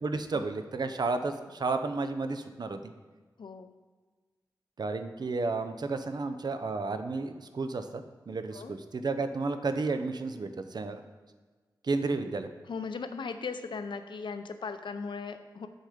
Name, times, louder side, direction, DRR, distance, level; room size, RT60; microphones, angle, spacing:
voice 1, 0.0-2.9 4.8-11.0 11.8-12.5, right 3 dB, 60° right, 8 dB, 0.6 m, -32 dB
voice 2, 3.4-3.7 8.5-8.8 12.7-15.7, left 5 dB, 85° left, 9 dB, 0.6 m, -38 dB
7.1 x 6.5 x 5.0 m, 1.4 s
wide cardioid pair, 100°, 8 cm